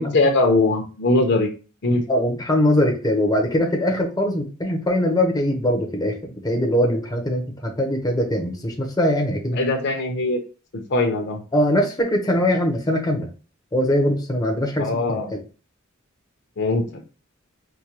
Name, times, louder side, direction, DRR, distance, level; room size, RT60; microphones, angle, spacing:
voice 1, 0.0-1.5 1.8-2.0 9.5-10.4 10.7-11.4 14.8-15.3 16.6-16.8, left 2 dB, 55° left, 4 dB, 0.7 m, -21 dB
voice 2, 2.1-9.6 11.5-13.3 13.7-15.4, left 1 dB, 20° left, 1 dB, 0.7 m, -22 dB
4.6 x 2.2 x 2.8 m, 0.34 s
head